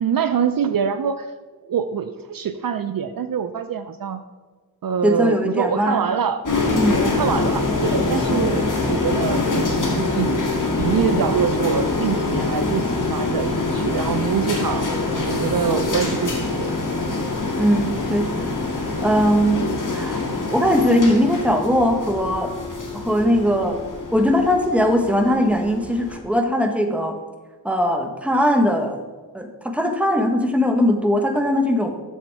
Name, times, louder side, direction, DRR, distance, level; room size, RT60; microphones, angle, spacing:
voice 1, 0.0-1.3 1.7-4.2 4.8-6.4 7.0-10.4 10.8-14.9 15.2-16.7, right 7 dB, 60° right, 11 dB, 0.5 m, -24 dB
voice 2, 5.0-6.0 6.8-7.1 17.6-18.5 19.0-19.7 19.9-20.2 20.5-22.5 22.9-23.8 24.1-27.2 27.6-29.0 29.3-31.9, equal, 5° right, 4 dB, 1.1 m, -20 dB
sound 1, 6.5-26.2, left 3 dB, 50° left, 1.7 m, -24 dB
7.2 x 6.8 x 4.6 m, 1.3 s
wide cardioid pair, 60°, 39 cm